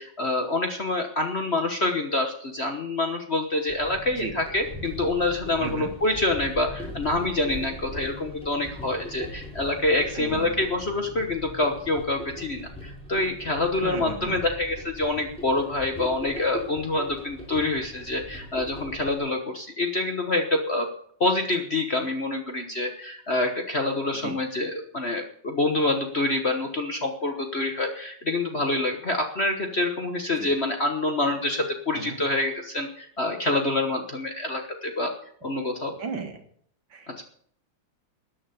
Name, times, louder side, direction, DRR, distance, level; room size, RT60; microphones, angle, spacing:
voice 1, 0.0-20.9 21.2-35.1 35.4-35.9 37.1-37.2, left 2 dB, 35° left, 4 dB, 1.2 m, -26 dB
sound 1, 3.7-19.2, equal, 5° left, 3.6 m, -40 dB
voice 2, 10.2-10.6 13.8-14.4 24.2-24.3 30.4-30.5 31.9-32.2 36.0-36.4 36.9-37.2, right 5 dB, 65° right, 5 dB, 2.3 m, -35 dB
14.0 x 9.2 x 6.9 m, 0.62 s
omnidirectional pair, 2.3 m